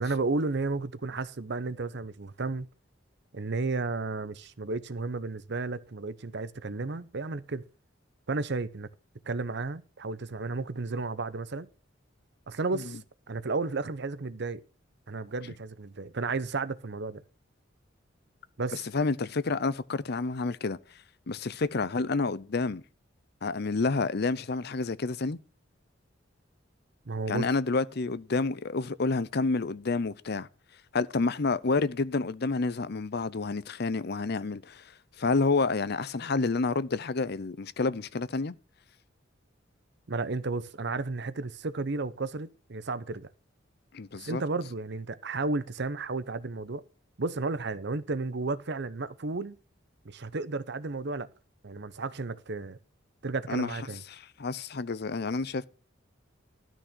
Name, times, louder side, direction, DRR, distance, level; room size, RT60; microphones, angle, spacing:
voice 1, 0.0-2.7 3.3-7.6 8.3-8.9 9.3-11.7 12.5-13.0 13.3-14.6 15.1-17.2 18.6-18.8 27.1-27.5 40.1-43.3 44.2-46.8 47.2-49.6 50.0-51.3 51.6-52.8 53.2-54.0, right 3 dB, 60° right, 0.8 m, -33 dB
voice 2, 18.7-21.0 21.3-22.8 23.4-25.4 27.3-30.5 30.9-38.5 43.9-44.4 53.5-53.7 54.1-55.7, left 3 dB, 55° left, 0.7 m, -29 dB
12.5 x 6.1 x 6.2 m
head